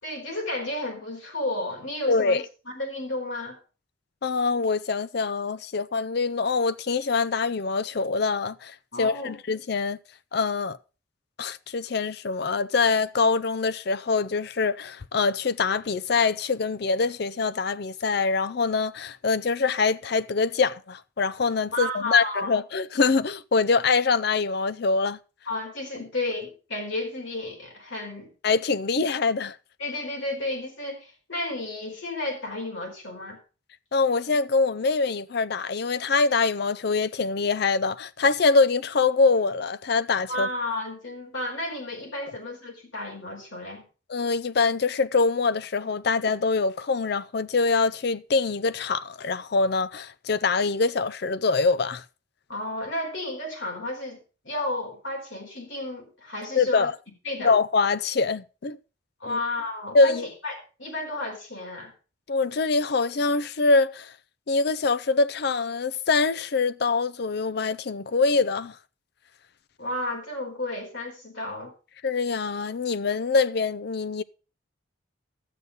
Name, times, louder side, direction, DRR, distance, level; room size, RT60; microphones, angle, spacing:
voice 1, 0.0-3.6 8.9-9.3 21.7-22.6 25.4-28.3 29.8-33.4 40.3-43.8 52.5-54.2 54.4-56.9 57.2-57.6 59.2-61.9 69.8-71.7, left 2 dB, 70° left, 4.5 m, -32 dB
voice 2, 2.1-2.4 4.2-10.0 10.3-10.8 11.4-25.2 28.4-29.6 33.9-40.5 44.1-52.0 56.5-56.9 57.4-58.8 59.3-59.4 59.9-60.3 62.3-64.1 64.5-68.7 72.0-74.2, left 4 dB, 55° left, 0.5 m, -24 dB
12.5 x 8.0 x 5.3 m
head